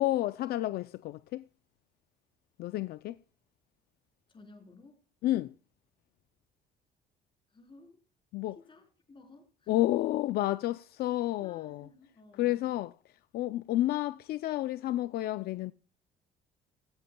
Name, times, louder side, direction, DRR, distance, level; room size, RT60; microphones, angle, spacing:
voice 1, 0.0-1.5 2.6-3.2 5.2-5.5 8.3-8.6 9.7-11.9 12.4-12.9 13.3-15.7, left 15 dB, 70° left, 0.4 m, -30 dB
voice 2, 4.3-5.0 7.5-8.0 8.6-9.9 11.4-12.8, left 3 dB, 30° left, 3.8 m, -55 dB
16.0 x 14.5 x 2.2 m
cardioid pair, 110°, 17 cm